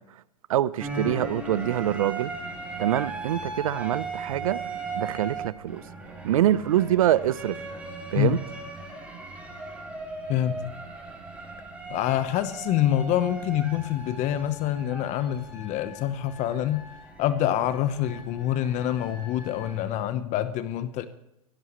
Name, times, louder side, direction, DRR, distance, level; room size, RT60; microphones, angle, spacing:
voice 1, 0.5-2.3 2.8-4.6 4.9-5.8 6.2-7.6 8.1-8.4, right 12 dB, 75° right, 0.7 m, -25 dB
sound 1, 0.8-19.8, right 3 dB, 5° right, 6.2 m, -38 dB
voice 2, 10.3-10.6 11.9-16.8 17.2-21.1, left 11 dB, 40° left, 1.0 m, -26 dB
17.0 x 16.0 x 3.1 m
hypercardioid pair, 110°, 18 cm